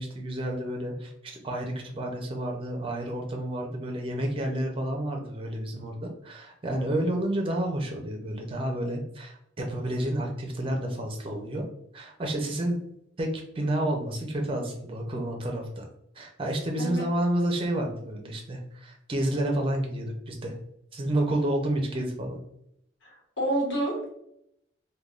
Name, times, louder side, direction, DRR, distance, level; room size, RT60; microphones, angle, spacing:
voice 1, 0.0-11.7 11.9-12.8 13.2-13.3 13.6-15.9 16.2-20.5 20.9-22.4, right 1 dB, 30° right, 1 dB, 0.5 m, -30 dB
voice 2, 23.0-24.1, right 1 dB, 85° left, -2 dB, 1.1 m, -29 dB
3.4 x 2.2 x 2.4 m, 0.76 s
head